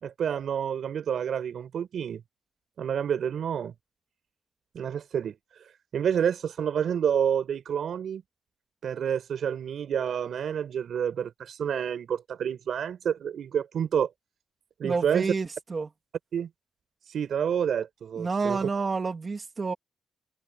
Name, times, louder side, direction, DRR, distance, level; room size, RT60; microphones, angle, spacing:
voice 1, 0.0-2.2 2.8-3.7 4.7-8.2 8.8-14.1 14.8-15.3 16.3-16.5 17.0-18.7, right 8 dB, 65° right, 4.6 m, -29 dB
voice 2, 14.8-15.9 18.2-19.7, right 4 dB, 30° right, 2.4 m, -29 dB
wide cardioid pair, 150°, 0 cm